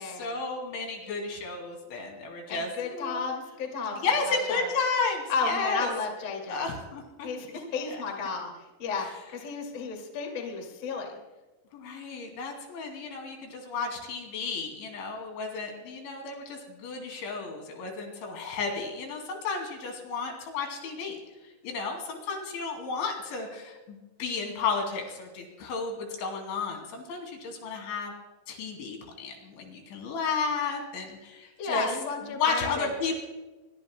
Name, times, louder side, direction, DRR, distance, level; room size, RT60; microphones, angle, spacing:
voice 1, 0.1-3.3 4.0-5.9 6.5-7.3 11.7-21.2 21.6-28.1 28.5-31.9 32.3-33.1, left 4 dB, 70° left, 2 dB, 4.8 m, -32 dB
voice 2, 2.5-4.7 5.3-6.7 7.2-9.1 9.3-11.2 31.6-32.9, left 4 dB, 40° left, 2 dB, 2.0 m, -33 dB
24.0 x 23.0 x 2.2 m, 1.1 s
omnidirectional pair, 5.8 m